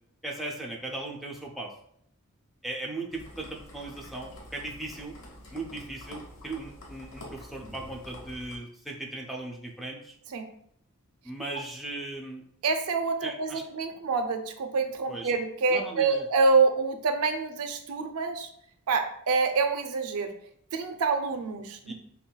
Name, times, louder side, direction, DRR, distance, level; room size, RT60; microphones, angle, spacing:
voice 1, 0.2-1.7 2.6-5.1 5.5-10.1 11.2-12.4 13.2-13.6 15.1-15.3 15.7-16.3 21.9-22.0, right 2 dB, ahead, -1 dB, 0.3 m, -38 dB
sound 1, 3.1-8.6, left 1 dB, 70° left, 0.8 m, -47 dB
voice 2, 12.6-18.5 18.9-20.3 20.7-21.9, right 4 dB, 80° right, 7 dB, 0.4 m, -26 dB
5.4 x 2.2 x 2.2 m, 0.69 s
head